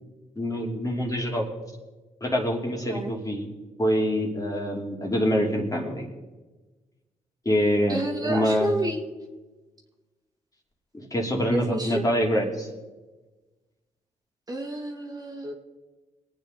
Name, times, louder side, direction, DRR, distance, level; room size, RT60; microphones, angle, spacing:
voice 1, 0.4-1.5 2.2-3.5 3.8-6.1 7.4-8.7 10.9-12.7, equal, 25° left, 0 dB, 2.9 m, -25 dB
voice 2, 7.9-9.0 11.5-12.0 14.5-15.5, right 1 dB, 25° right, 1 dB, 2.1 m, -29 dB
22.0 x 8.8 x 3.9 m, 1.2 s
supercardioid pair, 60°, 15 cm